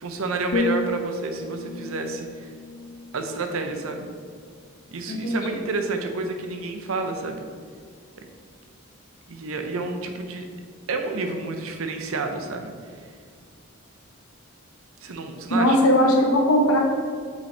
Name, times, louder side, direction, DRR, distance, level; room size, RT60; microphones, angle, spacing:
voice 1, 0.0-2.5 3.1-4.1 4.9-7.5 9.3-10.5 10.9-12.7 15.0-15.8, right 3 dB, 80° right, 5 dB, 0.6 m, -30 dB
sound 1, 0.5-4.5 4.9-5.2, left 2 dB, 45° left, 0.3 m, -32 dB
voice 2, 5.1-5.6 15.5-16.8, equal, 85° left, 0 dB, 0.9 m, -19 dB
5.5 x 5.3 x 3.3 m, 2.1 s
head